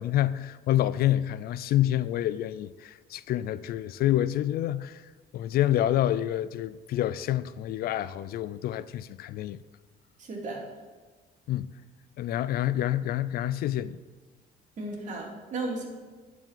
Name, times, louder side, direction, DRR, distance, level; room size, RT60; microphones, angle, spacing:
voice 1, 0.0-5.0 5.3-9.6 11.5-11.7 12.2-14.0, left 12 dB, 65° left, 0.4 m, -27 dB
voice 2, 10.2-10.6 14.8-15.9, right 2 dB, 45° right, 2.8 m, -34 dB
11.0 x 5.0 x 7.3 m
cardioid pair, 110°, 17 cm